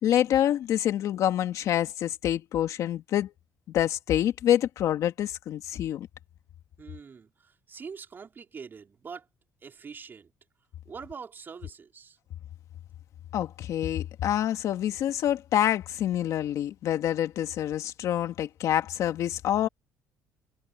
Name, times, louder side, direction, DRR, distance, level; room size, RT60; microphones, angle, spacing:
voice 1, 0.0-3.3 3.7-6.1 13.3-19.7, left 11 dB, 65° left, 2.3 m, -26 dB
voice 2, 6.8-9.2 9.6-10.3 10.8-12.2, right 6 dB, 35° right, 4.6 m, -44 dB
cardioid pair, 100°, 6 cm